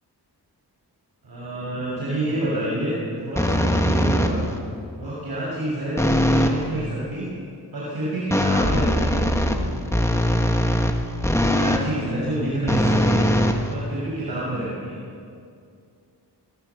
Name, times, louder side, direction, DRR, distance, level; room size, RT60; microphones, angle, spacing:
voice 1, 1.2-4.4 5.0-6.0 6.3-7.3 7.7-9.2 11.4-13.2 13.7-15.0, right 1 dB, 60° right, -7 dB, 6.1 m, -28 dB
sound 1, 3.4-4.6 6.0-6.6 8.3-11.9 12.7-14.2, equal, 5° left, 1.6 m, -21 dB
23.0 x 19.0 x 7.0 m, 2.4 s
wide cardioid pair, 130°, 42 cm